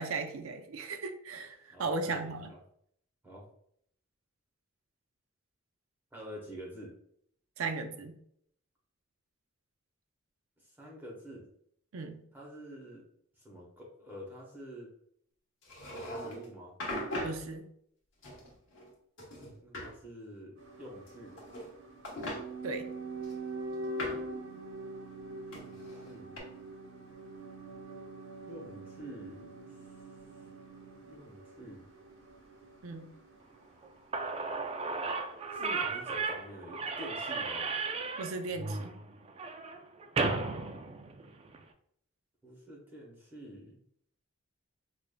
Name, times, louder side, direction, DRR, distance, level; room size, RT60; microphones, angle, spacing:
voice 1, 0.0-2.5 7.6-8.2 11.9-12.2 17.2-17.7 22.6-22.9 32.8-33.1 38.2-38.9, right 3 dB, 85° right, 7 dB, 0.5 m, -36 dB
voice 2, 1.7-2.6 3.2-3.4 6.1-6.9 10.6-11.5 12.3-13.0 13.4-14.9 16.1-16.7 19.6-21.4 25.5-26.3 28.4-29.7 31.0-31.8 35.5-37.7 42.4-43.8, equal, 10° right, -4 dB, 0.9 m, -47 dB
sound 1, 15.6-16.5 16.8-17.4 18.2-18.9 19.2-19.9 21.1-21.7 22.0-22.4 23.2-24.3 25.5-26.4, left 1 dB, 65° left, 1.2 m, -39 dB
sound 2, 20.6-34.6 34.9-35.0, right 2 dB, 70° right, 1.1 m, -44 dB
Slam / Squeak, 33.8-33.9 34.1-41.6, right 4 dB, 30° right, 0.3 m, -35 dB
4.9 x 2.5 x 2.2 m, 0.69 s
head